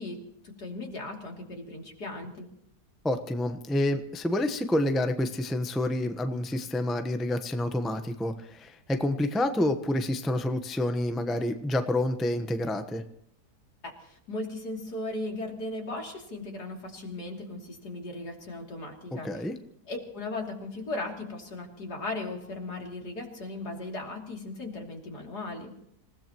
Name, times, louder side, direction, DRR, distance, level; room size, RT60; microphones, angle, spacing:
voice 1, 0.0-2.5 13.8-19.3 19.9-25.8, left 2 dB, 70° left, 0 dB, 3.6 m, -37 dB
voice 2, 3.0-13.0 19.2-19.5, left 1 dB, ahead, 7 dB, 0.7 m, -28 dB
27.0 x 16.5 x 3.0 m, 0.73 s
omnidirectional pair, 1.8 m